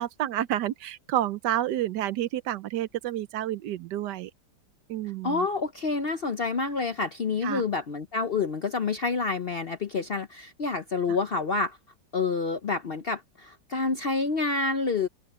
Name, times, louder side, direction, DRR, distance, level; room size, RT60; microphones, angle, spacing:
voice 1, 0.0-4.3 4.9-5.5 7.4-7.6, right 12 dB, 75° right, 1.3 m, -29 dB
voice 2, 5.2-11.8 12.1-15.1, left 4 dB, 50° left, 0.7 m, -28 dB
omnidirectional pair, 1.9 m